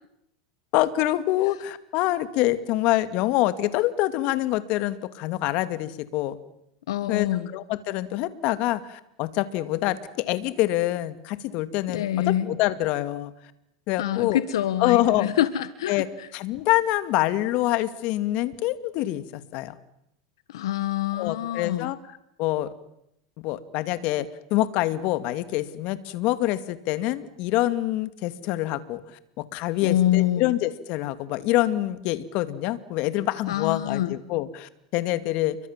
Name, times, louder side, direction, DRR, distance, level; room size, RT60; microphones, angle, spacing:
voice 1, 0.7-6.4 7.1-13.3 13.9-14.4 14.8-15.3 15.9-16.1 16.3-19.7 21.1-22.0 22.4-22.7 23.4-29.0 29.4-35.6, left 15 dB, 55° left, 13 dB, 2.3 m, -26 dB
voice 2, 6.9-7.5 11.9-12.5 14.0-16.3 20.5-21.9 29.8-30.5 33.5-34.2, left 12 dB, 85° left, 14 dB, 1.6 m, -26 dB
30.0 x 23.5 x 7.5 m, 0.78 s
supercardioid pair, 125°, 3 cm